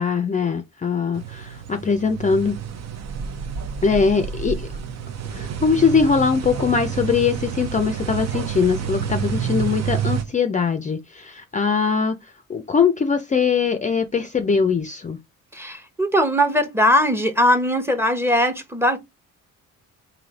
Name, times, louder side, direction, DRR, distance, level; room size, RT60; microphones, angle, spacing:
voice 1, 0.0-2.6 3.8-4.7 5.3-15.2, left 5 dB, 25° left, 0.5 m, -21 dB
sound 1, 1.1-10.2, right 8 dB, 60° right, 0.7 m, -29 dB
voice 2, 15.5-19.0, equal, 10° right, 0.8 m, -20 dB
3.2 x 2.7 x 4.0 m
cardioid pair, 90°, 30 cm